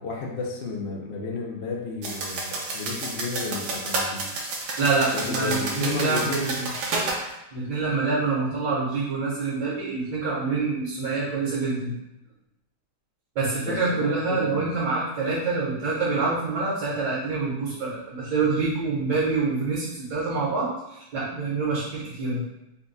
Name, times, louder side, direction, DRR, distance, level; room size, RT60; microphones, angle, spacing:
voice 1, 0.0-4.3 5.1-6.5 13.6-14.8, left 3 dB, 70° left, -1 dB, 0.6 m, -32 dB
sound 1, 2.0-7.2, right 2 dB, 90° right, 1.5 m, -30 dB
voice 2, 4.8-6.7 7.5-11.9 13.3-22.4, right 3 dB, 70° right, -6 dB, 1.7 m, -26 dB
4.1 x 2.3 x 3.9 m, 0.88 s
omnidirectional pair, 2.0 m